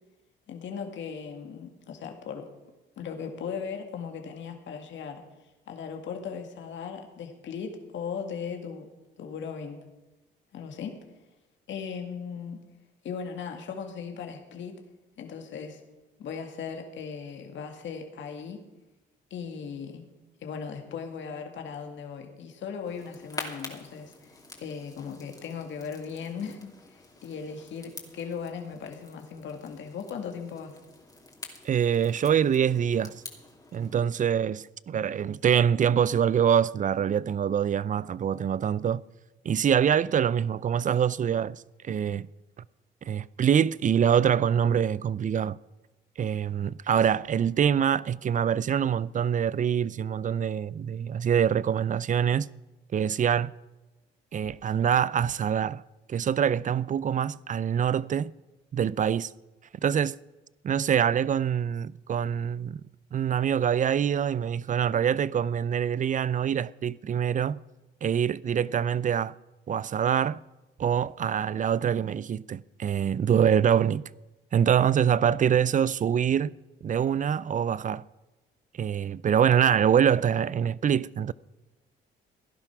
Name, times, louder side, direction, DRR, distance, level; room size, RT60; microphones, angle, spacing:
voice 1, 0.5-2.5 3.0-5.2 5.7-8.9 9.2-9.8 10.5-11.0 11.7-12.6 13.0-14.7 15.2-15.8 16.2-18.6 19.3-20.0 20.4-30.8, left 6 dB, 70° left, 2.1 m, -38 dB
sound 1, 22.8-33.9, left 2 dB, 20° left, 2.7 m, -46 dB
voice 2, 31.6-33.2 33.7-39.0 39.4-42.3 43.0-45.6 46.2-52.5 52.9-53.5 54.3-55.8 56.1-58.3 58.7-59.3 59.8-60.2 60.6-62.8 63.1-67.6 68.0-69.3 69.7-70.4 70.8-74.1 74.5-76.5 76.8-78.0 78.7-81.3, right 8 dB, 40° right, 0.5 m, -25 dB
16.5 x 11.0 x 6.0 m
cardioid pair, 90°, 20 cm